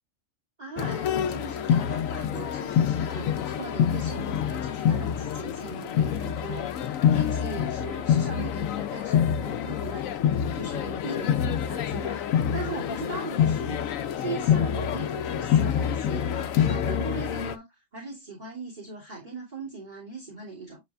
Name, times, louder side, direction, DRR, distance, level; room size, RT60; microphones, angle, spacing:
voice 1, 0.6-10.0 10.3-13.9 14.2-20.8, right 3 dB, 35° right, 2.9 m, -39 dB
sound 1, 0.8-17.6, left 9 dB, 90° left, 1.0 m, -26 dB
9.7 x 4.1 x 2.4 m
omnidirectional pair, 1.3 m